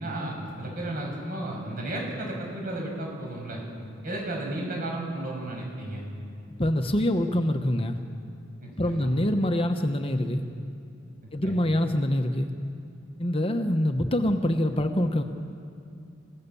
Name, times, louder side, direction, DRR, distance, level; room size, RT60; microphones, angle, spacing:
voice 1, 0.0-3.6 4.0-6.0 8.6-9.1 11.4-11.6, right 1 dB, 50° right, -1 dB, 6.7 m, -33 dB
voice 2, 6.6-8.0 8.8-10.4 11.3-12.5 13.2-15.2, left 1 dB, 30° left, 6 dB, 1.0 m, -25 dB
29.0 x 16.5 x 7.0 m, 2.7 s
head